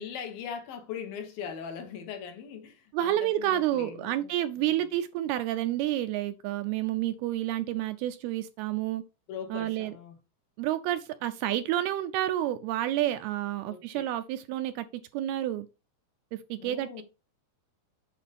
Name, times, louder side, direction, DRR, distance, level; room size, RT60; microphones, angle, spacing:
voice 1, 0.0-4.3 4.6-4.8 9.3-10.2 13.6-14.0 16.6-17.0, left 7 dB, 70° left, 2.5 m, -40 dB
voice 2, 2.9-9.0 9.5-9.9 10.6-14.9 15.1-15.7 16.3-17.0, right 13 dB, 80° right, 2.3 m, -29 dB
8.4 x 5.0 x 5.2 m
omnidirectional pair, 4.8 m